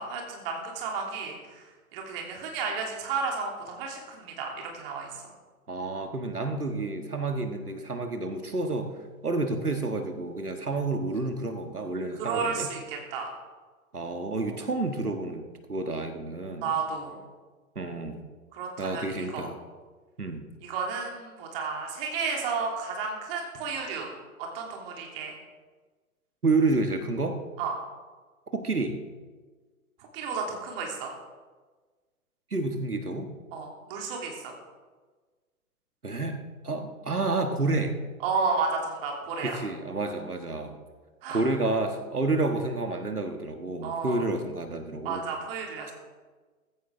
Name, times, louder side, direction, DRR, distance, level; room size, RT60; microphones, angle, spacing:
voice 1, 0.0-5.2 12.2-13.3 14.5-14.6 16.6-17.2 18.5-19.5 20.6-24.1 24.4-25.4 27.6-27.7 30.1-31.1 33.5-34.5 38.2-39.6 41.2-41.4 43.8-44.2 45.0-45.9, right 5 dB, 40° right, 0 dB, 3.1 m, -32 dB
voice 2, 5.7-8.9 9.2-12.7 13.9-16.7 17.7-18.2 18.8-19.6 20.2-20.5 26.4-27.4 28.5-29.0 32.5-33.3 36.0-36.4 36.6-38.0 39.4-40.7 41.3-45.3, right 3 dB, 85° right, 6 dB, 1.6 m, -29 dB
15.0 x 14.5 x 3.7 m, 1.4 s
figure-of-eight pair, 110°, 44 cm